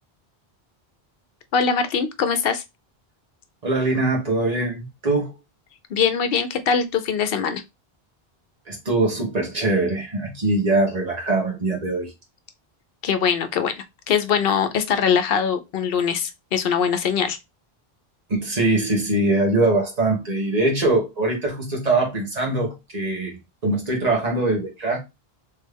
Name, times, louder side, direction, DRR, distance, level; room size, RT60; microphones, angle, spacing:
voice 1, 1.5-2.6 5.9-7.6 13.0-13.8 14.1-17.4, left 6 dB, 70° left, 0.8 m, -22 dB
voice 2, 3.6-5.3 8.7-12.1 18.3-25.0, right 2 dB, 40° right, 1.6 m, -22 dB
3.6 x 3.2 x 3.3 m
omnidirectional pair, 1.0 m